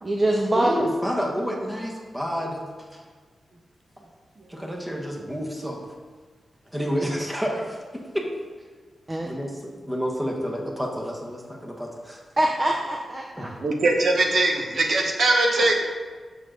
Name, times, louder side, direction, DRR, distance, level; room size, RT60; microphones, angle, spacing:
voice 1, 0.0-0.9 4.4-4.6 9.1-9.3 12.4-13.5, right 1 dB, 30° right, 1 dB, 0.7 m, -24 dB
voice 2, 0.5-3.0 4.5-5.8 6.7-8.3 9.2-12.2 13.4-13.6, equal, 10° right, 0 dB, 1.3 m, -29 dB
voice 3, 13.6-15.7, right 2 dB, 65° right, 2 dB, 1.1 m, -21 dB
7.4 x 6.6 x 3.8 m, 1.5 s
wide cardioid pair, 100°, 0 cm